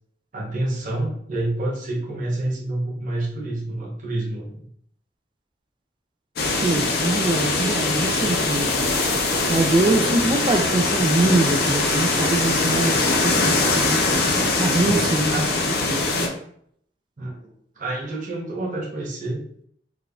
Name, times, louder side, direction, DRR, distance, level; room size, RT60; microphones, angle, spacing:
voice 1, 0.3-4.6 14.8-15.5 17.2-19.4, right 2 dB, 45° right, -4 dB, 0.8 m, -28 dB
sound 1, 6.4-16.3, left 2 dB, 60° left, 0.6 m, -22 dB
voice 2, 6.6-8.8 9.5-14.0 14.6-15.4 15.8-16.3, right 2 dB, 25° right, 6 dB, 0.3 m, -23 dB
4.8 x 2.5 x 2.3 m, 0.66 s
head